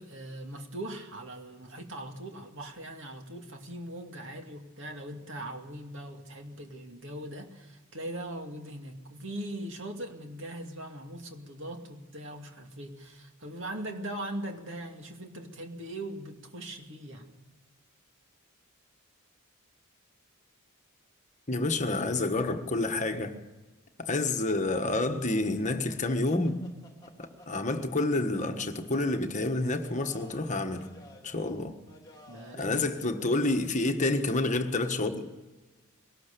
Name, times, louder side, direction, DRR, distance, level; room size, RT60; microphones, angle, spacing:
voice 1, 0.0-17.4 32.3-32.8, right 1 dB, 60° right, 2.4 m, -40 dB
voice 2, 21.5-23.4 24.0-26.6 27.2-30.9 31.2-31.8 32.5-35.3, left 2 dB, 35° left, 1.4 m, -29 dB
sound 1, 25.9-32.7, left 1 dB, 20° left, 2.9 m, -54 dB
21.5 x 18.5 x 6.9 m
head